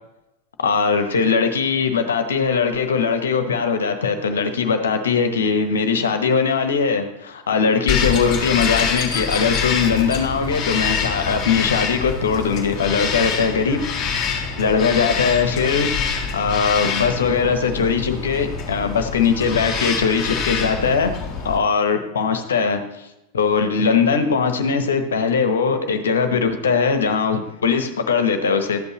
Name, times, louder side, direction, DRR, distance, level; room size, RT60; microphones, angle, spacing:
voice 1, 0.6-13.8 14.6-15.9 16.3-21.1 21.4-22.8 23.3-28.8, left 5 dB, 65° left, 7 dB, 1.0 m, -20 dB
Bird vocalization bird call bird song, 7.9-21.6, left 6 dB, 30° left, 1.7 m, -25 dB
12.0 x 8.1 x 3.0 m, 0.93 s
figure-of-eight pair, 90°, 0 cm